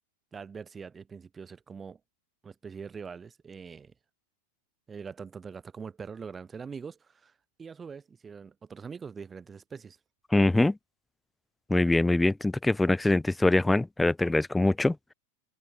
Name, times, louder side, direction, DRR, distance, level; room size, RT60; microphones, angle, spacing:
voice 1, 0.3-2.0 2.4-3.9 4.9-7.3 7.6-10.0, right 6 dB, 15° right, 1.5 m, -43 dB
voice 2, 10.3-10.8 11.7-15.1, left 2 dB, 5° left, 0.6 m, -24 dB
figure-of-eight pair, 90°, 0 cm